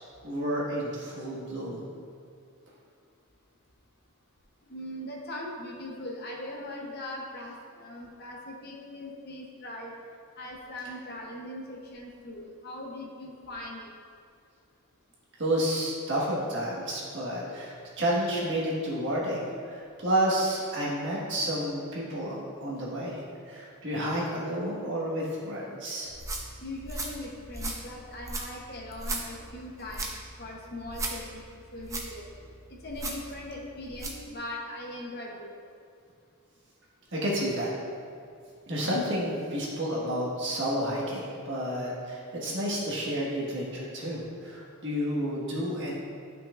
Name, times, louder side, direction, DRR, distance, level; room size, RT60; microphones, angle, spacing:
voice 1, 0.2-1.9 15.4-26.1 37.1-37.7 38.7-45.9, equal, 55° right, -5 dB, 1.6 m, -30 dB
voice 2, 4.7-10.0 10.4-13.9 26.6-30.1 30.4-31.5 31.7-32.3 32.7-35.5, left 1 dB, 45° left, -1 dB, 0.9 m, -40 dB
sound 1, 26.1-34.3, right 2 dB, 15° right, 0.6 m, -38 dB
10.0 x 5.8 x 2.5 m, 2.4 s
head